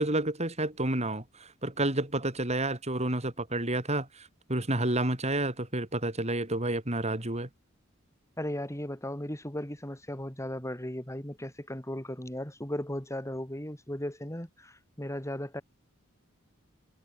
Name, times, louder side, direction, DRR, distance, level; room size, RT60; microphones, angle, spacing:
voice 1, 0.0-7.5, right 1 dB, 35° right, 5.6 m, -30 dB
voice 2, 8.4-15.6, left 1 dB, 15° left, 4.7 m, -36 dB
head